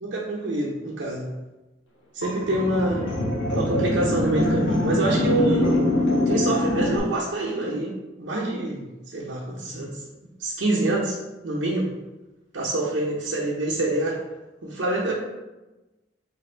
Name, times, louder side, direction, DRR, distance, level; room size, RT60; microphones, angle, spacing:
voice 1, 0.0-1.3 2.1-3.1 3.5-5.8 6.3-10.0 10.4-11.2 11.4-11.9 12.5-14.2 14.6-15.1, right 2 dB, 80° right, -5 dB, 0.7 m, -26 dB
sound 1, 2.2-7.0, left 1 dB, 80° left, 1.0 m, -23 dB
3.3 x 2.5 x 4.4 m, 1.1 s
head